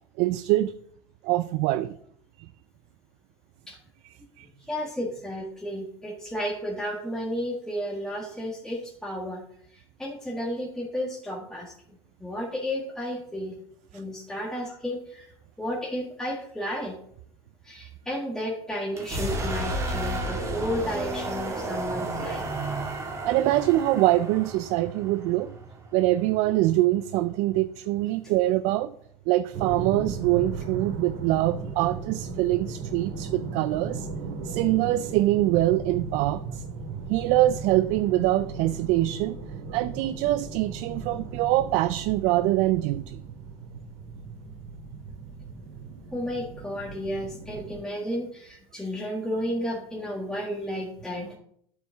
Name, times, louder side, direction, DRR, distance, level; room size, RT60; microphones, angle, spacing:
voice 1, 0.2-0.7 1.2-2.0 4.0-4.5 23.3-25.5 25.9-28.9 29.3-34.1 34.4-36.6 37.1-39.4 39.7-43.2, right 16 dB, 60° right, 0.4 m, -24 dB
voice 2, 4.4-9.4 9.7-11.7 12.2-13.6 13.9-17.0 17.6-22.4 46.1-51.3, equal, 5° left, 1.5 m, -32 dB
sound 1, 18.9-26.6, right 2 dB, 20° right, 2.0 m, -32 dB
sound 2, 29.5-47.8, right 4 dB, 75° right, 2.1 m, -37 dB
9.4 x 7.4 x 3.5 m
supercardioid pair, 120°, 14 cm